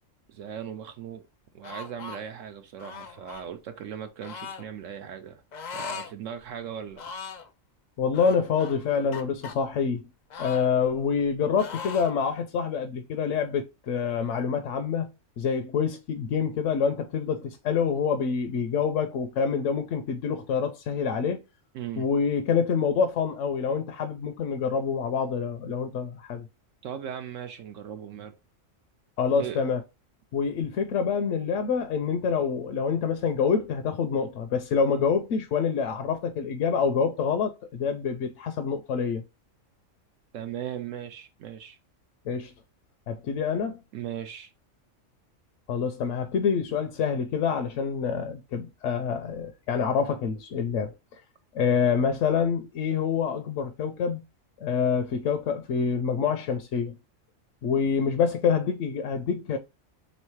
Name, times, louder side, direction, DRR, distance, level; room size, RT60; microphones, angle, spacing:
voice 1, 0.3-1.2 1.5-5.4 5.7-7.1 21.7-22.1 26.8-28.3 29.4-29.6 40.3-41.8 43.9-44.5, right 9 dB, 75° right, 0.9 m, -38 dB
sound 1, 1.6-2.2 2.8-3.5 4.2-4.6 5.5-6.1 6.4-6.5 6.9-7.5 8.1-9.5 10.3-11.3 11.6-12.1, left 6 dB, 55° left, 0.5 m, -39 dB
voice 2, 8.0-10.1 10.4-15.1 15.4-21.4 22.0-26.5 29.2-29.8 30.3-39.2 42.3-42.5 43.1-43.8 45.7-50.9 51.5-54.2 54.6-57.0 57.6-59.6, left 6 dB, 75° left, 0.9 m, -26 dB
3.5 x 3.2 x 4.5 m
omnidirectional pair, 1.3 m